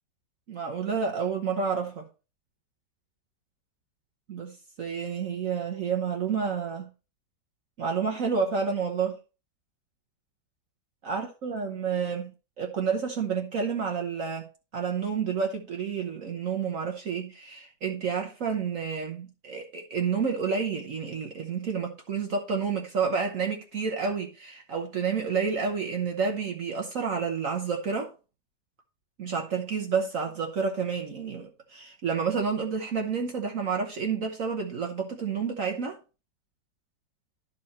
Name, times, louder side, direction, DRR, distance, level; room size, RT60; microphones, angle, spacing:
voice 1, 0.5-2.1 4.3-6.9 7.8-9.2 11.0-12.3 12.6-14.5 14.7-28.1 29.2-36.0, right 6 dB, 55° right, 1.3 m, -29 dB
12.0 x 4.3 x 4.2 m
omnidirectional pair, 1.8 m